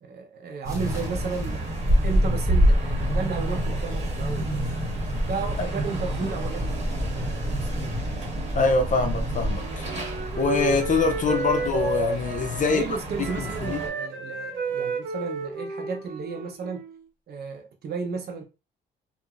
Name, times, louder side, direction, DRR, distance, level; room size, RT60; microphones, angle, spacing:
voice 1, 0.0-1.6 2.0-4.6 5.2-7.9 11.2-11.4 12.6-16.8 17.3-18.4, right 5 dB, 55° right, 0.8 m, -34 dB
sound 1, 0.6-11.9, right 1 dB, 15° right, 1.2 m, -31 dB
sound 2, 0.8-13.9, equal, 35° right, 1.6 m, -28 dB
voice 2, 8.6-9.9 10.4-12.8 13.7-13.8, left 4 dB, 40° left, 0.5 m, -24 dB
Wind instrument woodwind instrument, 9.4-12.9 13.2-17.1, right 3 dB, 80° right, 1.0 m, -32 dB
2.9 x 2.6 x 2.4 m
cardioid pair, 90°, 20 cm